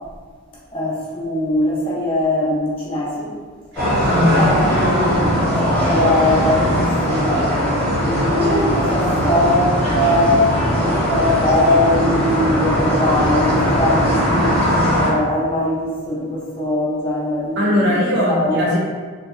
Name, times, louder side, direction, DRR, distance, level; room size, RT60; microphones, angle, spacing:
voice 1, 0.7-3.3 4.1-5.3 5.6-7.5 8.0-14.5 15.0-17.9 18.3-18.7, left 1 dB, 25° left, -7 dB, 0.4 m, -21 dB
voice 2, 3.7-4.6 8.3-8.7 17.6-18.8, left 1 dB, 50° right, -5 dB, 0.6 m, -19 dB
sound 1, 3.8-15.1, equal, 5° left, 0.8 m, -19 dB
2.7 x 2.1 x 2.3 m, 1.5 s
head